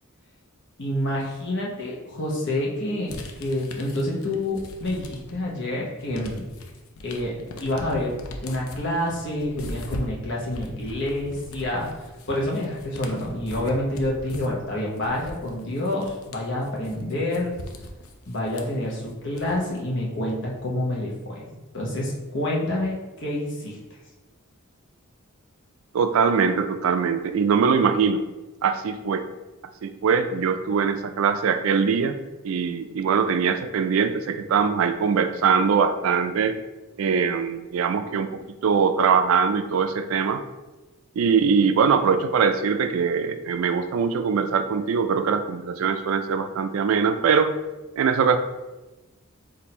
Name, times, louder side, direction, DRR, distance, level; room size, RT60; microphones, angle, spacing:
voice 1, 0.8-6.4 7.0-8.1 8.4-11.9 12.3-17.5 18.3-21.4 21.7-23.8, left 1 dB, 55° left, -3 dB, 0.9 m, -28 dB
sound 1, 3.1-5.5 5.8-19.8, left 2 dB, 80° left, 0.6 m, -40 dB
voice 2, 25.9-28.2 28.6-29.2 29.8-32.2 32.4-36.5 37.0-40.4 41.2-47.5 48.0-48.4, right 6 dB, 70° right, 10 dB, 0.3 m, -22 dB
4.2 x 2.6 x 4.2 m, 1.1 s
head